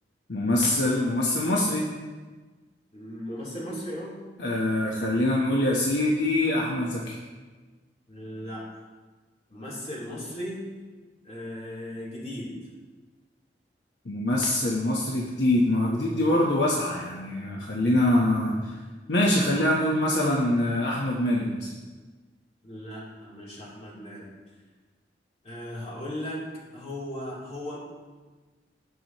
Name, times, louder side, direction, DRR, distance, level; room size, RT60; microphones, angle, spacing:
voice 1, 0.3-1.9 4.4-7.2 14.0-18.8 19.1-21.7, left 1 dB, 70° left, -2 dB, 1.1 m, -24 dB
voice 2, 2.9-4.2 8.1-8.6 9.5-10.6 11.2-12.5 22.6-24.3 25.4-26.4 26.7-27.8, left 1 dB, 40° left, -7 dB, 3.4 m, -37 dB
18.5 x 6.1 x 3.1 m, 1.3 s
head